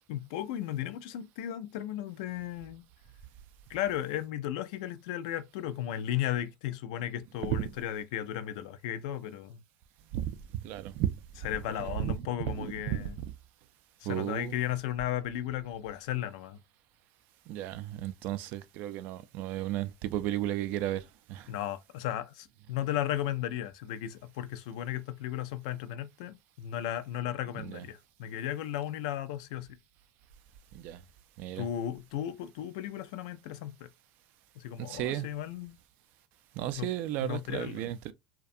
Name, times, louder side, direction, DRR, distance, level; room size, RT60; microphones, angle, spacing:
voice 1, 0.1-2.9 3.7-9.6 11.4-13.2 14.0-16.6 21.5-29.8 31.6-33.9 34.6-35.8 36.8-36.9 37.2-37.9, left 11 dB, 80° left, 0.3 m, -35 dB
voice 2, 10.1-11.1 11.8-12.1 12.6-13.1 14.1-14.6 17.5-21.5 27.6-27.8 30.7-31.0 31.4-31.6 34.8-35.3 36.6-38.1, right 12 dB, 65° right, 0.3 m, -34 dB
2.5 x 2.2 x 2.5 m
supercardioid pair, 95°, 4 cm